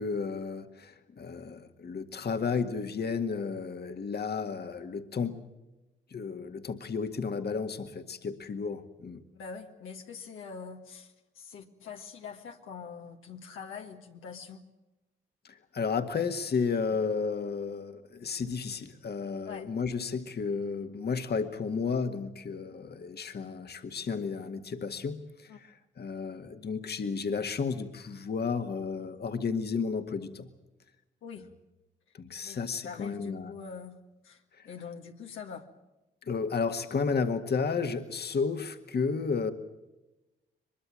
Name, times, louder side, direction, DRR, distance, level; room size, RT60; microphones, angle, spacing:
voice 1, 0.0-5.4 6.1-9.2 15.4-30.5 32.1-33.5 36.3-39.5, left 5 dB, 50° left, 6 dB, 1.8 m, -32 dB
voice 2, 9.3-14.6 19.5-19.7 25.5-25.6 31.2-31.5 32.4-32.6 32.8-34.0 34.2-35.7, left 6 dB, 80° left, 2 dB, 1.9 m, -44 dB
23.0 x 22.0 x 7.6 m, 1.0 s
supercardioid pair, 55°, 21 cm